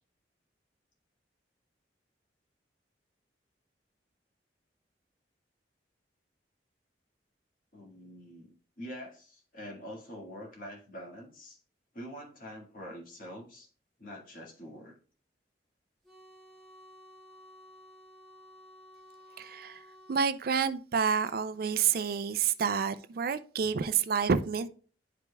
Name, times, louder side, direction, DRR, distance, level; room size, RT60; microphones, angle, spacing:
voice 1, 7.7-11.6 11.9-13.7 14.0-14.9, equal, 50° left, 1.7 m, -45 dB
sound 1, 16.0-20.2, left 1 dB, ahead, 1.6 m, -54 dB
voice 2, 19.4-19.8 20.1-24.7, right 6 dB, 55° right, 0.4 m, -29 dB
10.5 x 5.0 x 2.2 m
head